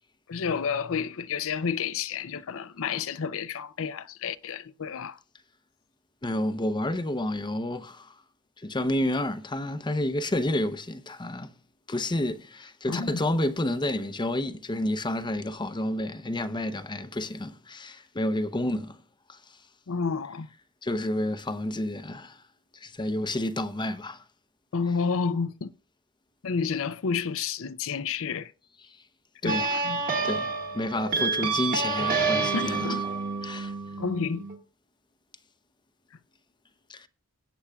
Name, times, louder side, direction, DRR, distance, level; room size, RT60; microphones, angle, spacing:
voice 1, 0.3-5.2 12.9-13.2 19.9-20.5 24.7-25.7 26.4-28.5 29.4-30.0 32.5-33.0 34.0-34.4, left 5 dB, 65° left, 0.6 m, -30 dB
voice 2, 6.2-8.1 8.6-11.5 11.9-19.0 19.3-19.6 20.8-22.4 22.7-24.2 28.9-29.0 29.4-29.8 30.2-33.0 33.4-33.7 36.9-37.1, left 1 dB, 20° left, 0.7 m, -30 dB
sound 1, 29.5-34.5, right 4 dB, 40° right, 1.7 m, -28 dB
18.5 x 8.6 x 2.3 m
head